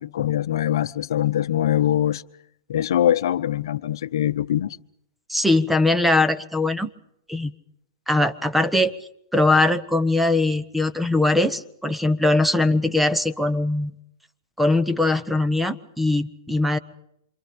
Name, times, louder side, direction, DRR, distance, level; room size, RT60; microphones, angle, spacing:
voice 1, 0.0-2.2 2.7-4.8, left 11 dB, 70° left, 0.8 m, -23 dB
voice 2, 5.3-6.9 7.3-7.5 8.1-8.9 9.3-13.9 14.6-16.8, left 2 dB, 5° right, 1.0 m, -21 dB
27.5 x 25.5 x 5.3 m
hypercardioid pair, 135°, 2 cm